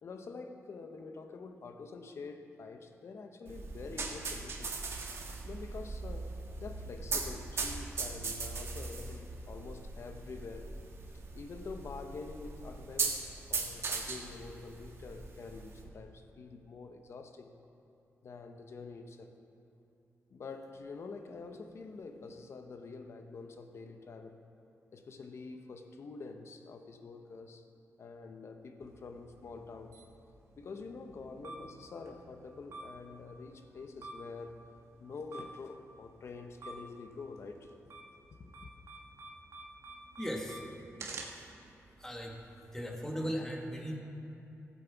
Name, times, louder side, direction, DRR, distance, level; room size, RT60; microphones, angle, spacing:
voice 1, 0.0-4.8 5.4-6.3 6.6-10.7 11.3-13.2 13.5-17.5 18.2-19.4 20.3-24.4 24.9-27.6 28.0-30.0 30.6-34.6 35.0-37.8 38.4-38.7, left 4 dB, 55° left, 6 dB, 0.9 m, -46 dB
sound 1, 3.5-15.9, right 4 dB, 55° right, 1.3 m, -39 dB
sound 2, 28.8-42.7, right 2 dB, 70° right, 1.4 m, -51 dB
voice 2, 40.2-40.7 42.0-42.3 42.7-44.0, equal, 10° left, 0 dB, 1.4 m, -37 dB
16.5 x 7.5 x 4.6 m, 2.8 s
wide cardioid pair, 120°, 5 cm